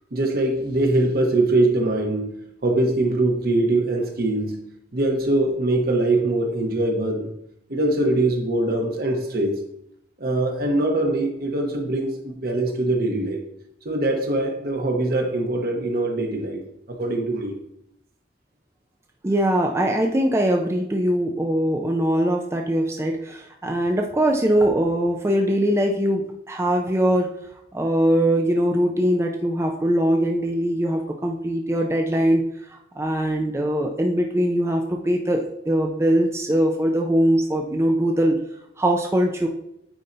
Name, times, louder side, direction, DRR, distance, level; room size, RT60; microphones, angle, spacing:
voice 1, 0.1-7.3 7.7-9.6 10.2-13.4 13.8-16.6 17.0-17.6, right 2 dB, 60° right, 2 dB, 1.1 m, -22 dB
voice 2, 19.2-27.3 27.7-32.4 32.7-38.4 38.8-39.5, right 1 dB, 15° right, 2 dB, 0.4 m, -21 dB
9.0 x 4.3 x 2.7 m, 0.77 s
head